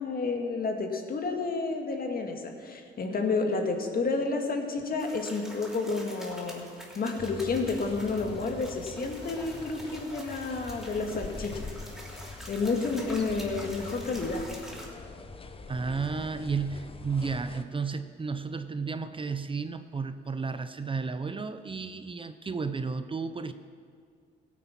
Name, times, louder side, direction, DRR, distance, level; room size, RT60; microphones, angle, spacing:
voice 1, 0.0-6.6 7.0-11.7 12.5-14.4, left 3 dB, 50° left, 3 dB, 2.0 m, -30 dB
sound 1, 5.0-14.9, equal, ahead, 3.4 m, -46 dB
sound 2, 7.2-17.6, left 3 dB, 30° left, 0.9 m, -44 dB
voice 2, 15.7-23.5, right 4 dB, 25° right, 10 dB, 0.6 m, -33 dB
16.5 x 9.3 x 6.0 m, 2.2 s
cardioid pair, 90°, 20 cm